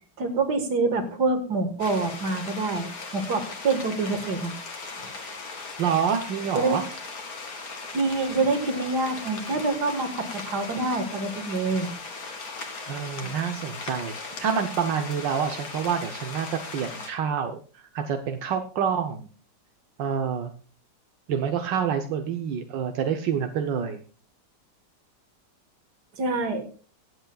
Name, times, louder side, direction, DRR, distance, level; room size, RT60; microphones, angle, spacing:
voice 1, 0.2-4.5 5.0-5.1 6.5-6.8 7.9-11.9 13.2-13.3 26.2-26.8, right 3 dB, 65° right, 7 dB, 2.2 m, -26 dB
sound 1, 1.8-17.1, left 4 dB, 55° left, 2.2 m, -38 dB
voice 2, 5.8-6.8 12.9-19.3 20.0-20.5 21.3-24.0, right 7 dB, 85° right, 5 dB, 1.6 m, -27 dB
23.5 x 8.0 x 2.3 m, 0.39 s
omnidirectional pair, 1.9 m